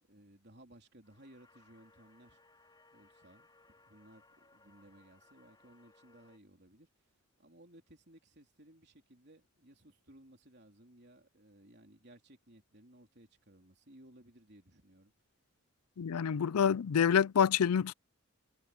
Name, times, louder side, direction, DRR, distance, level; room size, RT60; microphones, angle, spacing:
voice 1, 0.0-2.4 2.9-3.5 3.9-6.9 7.4-15.1, right 1 dB, 50° right, 3.8 m, -60 dB
sound 1, 1.0-6.4, left 3 dB, 20° left, 5.1 m, -65 dB
voice 2, 16.0-17.9, left 7 dB, 90° left, 0.4 m, -27 dB
head